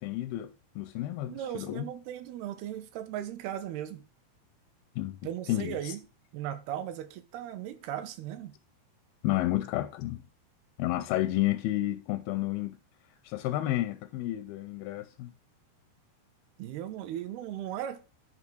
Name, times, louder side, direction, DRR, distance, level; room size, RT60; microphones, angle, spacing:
voice 1, 0.0-1.9 5.0-5.2 5.5-5.9 9.2-10.2 10.8-12.8 13.2-15.3, left 15 dB, 85° left, 2.2 m, -31 dB
voice 2, 1.3-4.0 5.2-6.0 6.3-8.5 16.6-18.0, right 11 dB, 80° right, 2.5 m, -37 dB
10.5 x 3.6 x 6.2 m
omnidirectional pair, 4.8 m